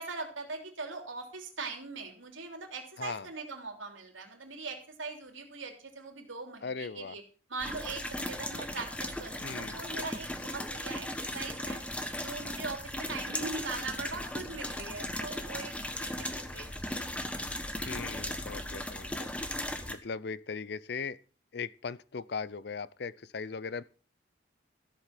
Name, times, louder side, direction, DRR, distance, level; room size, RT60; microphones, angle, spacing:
voice 1, 0.0-7.2 7.5-11.1 11.3-11.8 12.2-17.3, right 3 dB, 80° right, 3.3 m, -41 dB
voice 2, 6.6-7.2 9.4-9.8 17.9-19.3 19.9-21.2 21.5-23.8, left 5 dB, 55° left, 0.5 m, -38 dB
sound 1, 7.6-20.0, left 1 dB, 5° left, 1.1 m, -37 dB
14.0 x 8.1 x 5.9 m
head